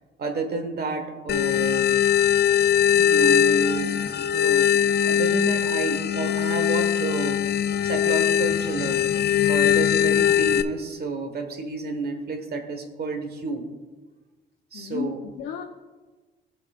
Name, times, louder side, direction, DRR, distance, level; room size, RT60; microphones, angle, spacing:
voice 1, 0.2-2.0 2.9-9.0 9.5-13.7 14.7-15.2, right 3 dB, 50° right, 5 dB, 1.5 m, -30 dB
sound 1, 1.3-10.6, left 9 dB, 55° left, 0.5 m, -21 dB
voice 2, 9.6-10.1 14.7-15.6, left 8 dB, 85° left, 1 dB, 0.8 m, -35 dB
17.5 x 6.1 x 2.5 m, 1.3 s
cardioid pair, 90°, 20 cm